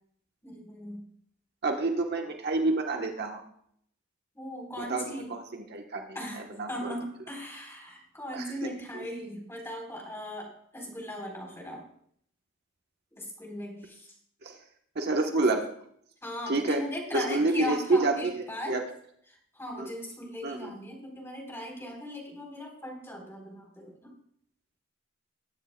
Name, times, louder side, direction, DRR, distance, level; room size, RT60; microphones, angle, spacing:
voice 1, 0.4-1.0 4.3-5.3 6.1-6.4 6.7-11.8 13.2-14.1 16.2-18.8 19.5-24.1, left 1 dB, 15° left, -1 dB, 4.0 m, -38 dB
voice 2, 1.6-3.4 4.8-6.0 6.3-6.9 8.3-8.4 14.4-14.6 14.9-15.6 16.5-16.8 17.1-18.8 19.8-19.9 20.4-20.7, right 2 dB, 55° right, 3 dB, 1.2 m, -28 dB
21.0 x 9.9 x 2.3 m, 0.66 s
head